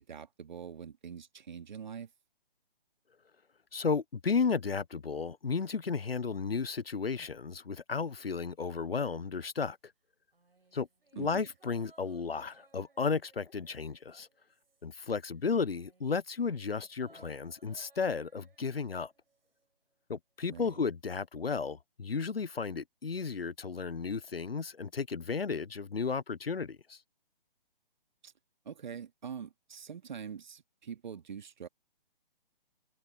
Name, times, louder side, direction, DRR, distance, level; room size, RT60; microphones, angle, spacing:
voice 1, 0.0-2.1 11.2-11.4 20.5-20.7 28.2-28.3 28.7-31.7, right 7 dB, 50° right, 2.1 m, -44 dB
voice 2, 3.7-9.8 10.7-10.9 11.1-14.3 14.8-19.1 20.1-27.0, left 5 dB, 90° left, 0.6 m, -33 dB
sound 1, 10.3-15.1 15.3-19.7 20.0-20.1, right 4 dB, 70° right, 3.9 m, -65 dB
figure-of-eight pair, 140°, 29 cm